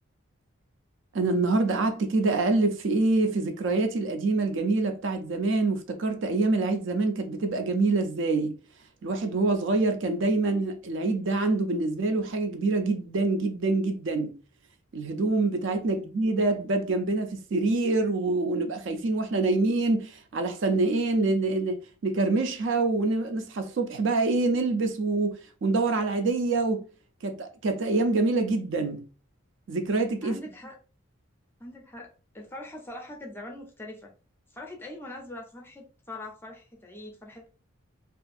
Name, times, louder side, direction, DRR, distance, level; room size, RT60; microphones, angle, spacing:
voice 1, 1.1-8.5 9.0-14.3 14.9-26.8 27.2-29.0 29.7-30.4, right 3 dB, 55° right, 0.4 m, -26 dB
voice 2, 30.2-30.7 31.6-34.1 34.5-37.5, left 1 dB, 10° left, 0.4 m, -42 dB
2.4 x 2.4 x 2.4 m
head